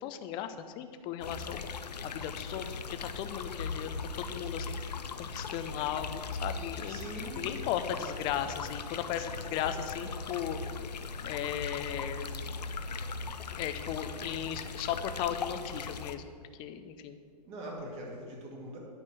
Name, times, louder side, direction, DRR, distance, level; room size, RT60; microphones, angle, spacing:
voice 1, 0.0-7.0 7.4-10.6 11.2-12.4 13.5-17.2, left 9 dB, 25° left, 9 dB, 0.5 m, -36 dB
sound 1, 1.2-16.2, left 5 dB, 75° left, 0.6 m, -39 dB
voice 2, 6.6-7.6 17.4-18.8, right 1 dB, 30° right, -1 dB, 2.1 m, -43 dB
9.9 x 4.2 x 7.5 m, 2.1 s
hypercardioid pair, 125°, 21 cm